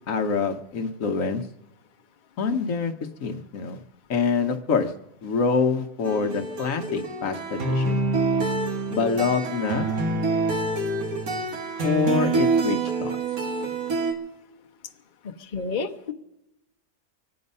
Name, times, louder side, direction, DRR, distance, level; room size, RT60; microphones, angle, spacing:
voice 1, 0.1-1.4 2.4-2.9 3.2-3.8 4.1-4.9 5.2-8.0 8.9-9.9 11.8-13.2, left 5 dB, 65° left, 6 dB, 1.2 m, -25 dB
sound 1, 6.0-14.1, right 3 dB, 80° right, 2.0 m, -26 dB
voice 2, 15.5-16.1, left 4 dB, 40° left, 3 dB, 0.9 m, -29 dB
25.0 x 8.7 x 5.4 m, 0.91 s
omnidirectional pair, 1.5 m